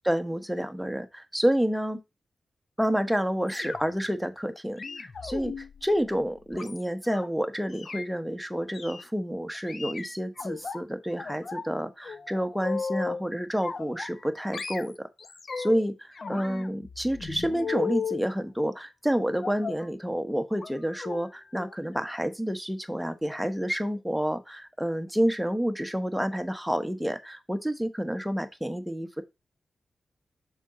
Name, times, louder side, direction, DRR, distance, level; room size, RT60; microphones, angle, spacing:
voice 1, 0.0-2.0 2.8-15.1 15.6-29.2, equal, ahead, 1.0 m, -29 dB
sound 1, 3.5-4.1 4.8-7.3 7.7-8.1 8.7-9.0 9.7-10.8 11.2-11.7 12.0-13.2 13.6-14.3 14.5-15.8 16.2-18.2 19.4-19.9 20.5-20.7 21.0-21.2 21.5-21.7 22.0-22.1, left 5 dB, 55° left, 0.6 m, -36 dB
6.1 x 3.9 x 4.1 m
cardioid pair, 65°, 0 cm